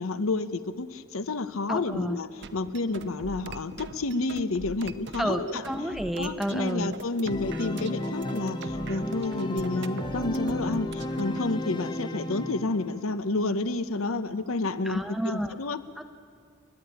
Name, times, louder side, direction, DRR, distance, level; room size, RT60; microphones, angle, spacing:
voice 1, 0.0-5.6 6.2-15.8, left 3 dB, 80° left, 13 dB, 0.9 m, -30 dB
voice 2, 1.7-2.2 5.2-6.9 14.9-15.5 16.0-16.1, equal, ahead, 7 dB, 0.8 m, -30 dB
sound 1, 2.4-11.4, right 3 dB, 55° right, 0.8 m, -43 dB
Organ, 7.3-13.0, left 1 dB, 20° left, 1.0 m, -33 dB
30.0 x 10.5 x 8.9 m, 2.2 s
head